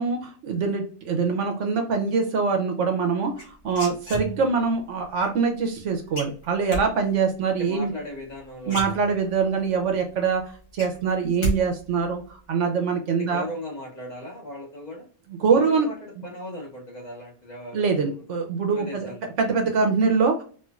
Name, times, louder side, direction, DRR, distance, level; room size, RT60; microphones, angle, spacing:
voice 1, 0.0-3.3 3.6-7.9 8.7-10.4 10.7-12.2 12.5-13.4 15.4-15.9 17.7-19.1 19.4-20.4, right 5 dB, 65° right, 4 dB, 0.9 m, -23 dB
sound 1, 3.4-4.7 6.1-6.8 8.2-8.3 8.6-9.5 9.9-10.0 10.3-11.6 11.8-12.3, right 1 dB, 60° left, 1.9 m, -31 dB
voice 2, 7.6-9.0 13.2-15.1 15.5-18.2 18.7-19.3, left 1 dB, 35° left, -2 dB, 1.1 m, -37 dB
4.3 x 2.6 x 2.3 m, 0.42 s
omnidirectional pair, 1.4 m